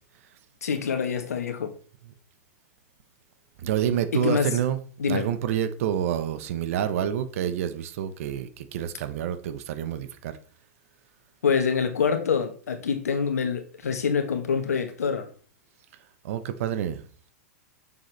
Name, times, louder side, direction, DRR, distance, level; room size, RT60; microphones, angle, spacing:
voice 1, 0.6-1.7 4.1-4.5 5.0-5.3 11.4-15.3, left 6 dB, 85° left, 1.3 m, -26 dB
voice 2, 3.6-4.8 5.1-10.4 16.2-17.1, right 9 dB, 65° right, 1.0 m, -28 dB
7.1 x 6.3 x 3.4 m
hypercardioid pair, 110°, 8 cm